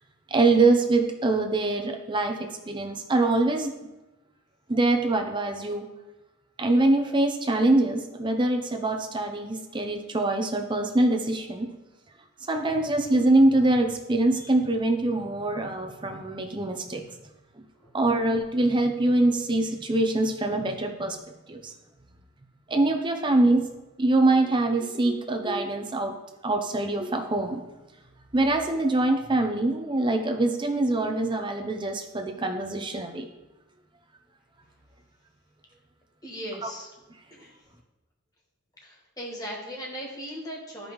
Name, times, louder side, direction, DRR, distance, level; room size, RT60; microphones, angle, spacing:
voice 1, 0.3-3.7 4.7-5.9 6.6-11.7 12.5-17.0 17.9-21.2 21.5-21.7 22.7-23.6 24.0-26.1 26.4-27.6 28.3-33.3, right 2 dB, 20° right, 4 dB, 0.6 m, -24 dB
voice 2, 36.2-36.9 37.3-37.6 38.8-40.9, equal, 15° left, -2 dB, 1.3 m, -38 dB
11.5 x 5.2 x 3.1 m, 1.0 s
head